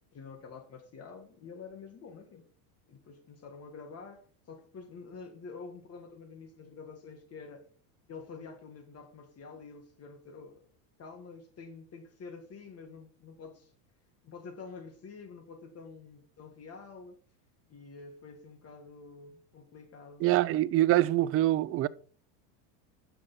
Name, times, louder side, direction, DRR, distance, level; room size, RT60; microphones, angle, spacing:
voice 1, 0.1-2.5 2.9-7.7 8.1-10.7 11.0-13.7 14.2-17.2 17.7-20.3, left 4 dB, 30° left, 1.9 m, -48 dB
voice 2, 20.2-21.9, right 15 dB, 30° right, 0.4 m, -25 dB
11.0 x 7.0 x 4.2 m
supercardioid pair, 115°, 45 cm